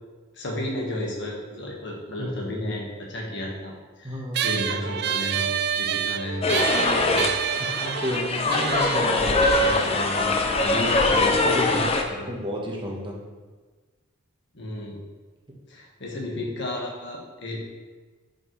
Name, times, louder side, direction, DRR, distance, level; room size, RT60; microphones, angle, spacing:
voice 1, 0.3-6.6 7.1-7.3 11.7-12.3 14.5-15.0 15.7-17.6, left 1 dB, 60° left, -1 dB, 1.4 m, -33 dB
voice 2, 4.0-4.4 7.6-11.9 12.3-13.2, equal, 25° right, -2 dB, 1.0 m, -31 dB
sound 1, 4.3-11.1, right 9 dB, 50° right, 0.3 m, -29 dB
sound 2, 6.4-12.0, left 2 dB, 30° left, 0.6 m, -22 dB
8.3 x 5.3 x 3.1 m, 1.4 s
head